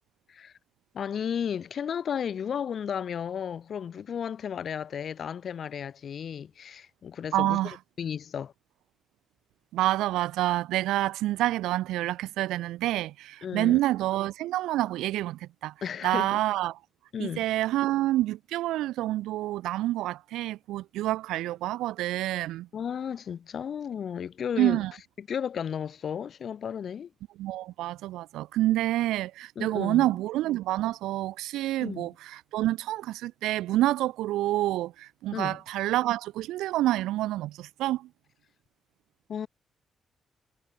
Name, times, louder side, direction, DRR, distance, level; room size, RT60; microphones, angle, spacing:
voice 1, 0.9-8.5 13.4-13.8 15.8-16.4 17.1-17.4 22.7-24.8 25.2-27.1 29.6-30.1 31.8-32.1 35.3-35.6 39.3-39.5, left 8 dB, 60° left, 2.1 m, -34 dB
voice 2, 7.3-7.7 9.7-15.7 16.0-16.8 17.2-22.7 24.6-24.9 27.4-38.1, right 15 dB, 85° right, 0.7 m, -28 dB
supercardioid pair, 60°, 0 cm